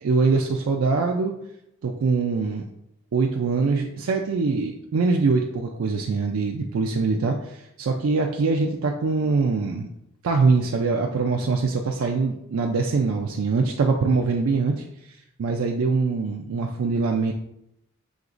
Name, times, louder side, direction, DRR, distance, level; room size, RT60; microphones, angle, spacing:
voice 1, 0.0-1.3 1.8-2.6 3.1-9.9 10.2-14.8 15.4-17.3, right 4 dB, 75° right, 1 dB, 0.4 m, -23 dB
6.2 x 2.9 x 2.5 m, 0.80 s
head